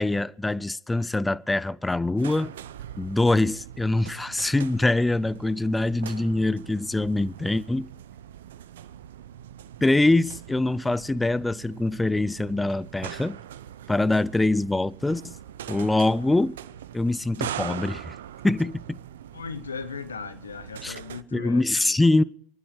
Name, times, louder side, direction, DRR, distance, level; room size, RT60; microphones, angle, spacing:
voice 1, 0.0-2.5 3.0-7.9 9.8-13.4 13.9-15.3 15.7-16.6 16.9-18.1 18.4-19.0 20.8-21.0 21.3-22.2, left 2 dB, 10° left, 0.6 m, -24 dB
sound 1, 2.2-21.2, right 10 dB, 75° right, 0.7 m, -41 dB
voice 2, 19.3-22.0, left 5 dB, 85° left, 1.2 m, -37 dB
28.5 x 10.0 x 4.8 m
hypercardioid pair, 80°, 0 cm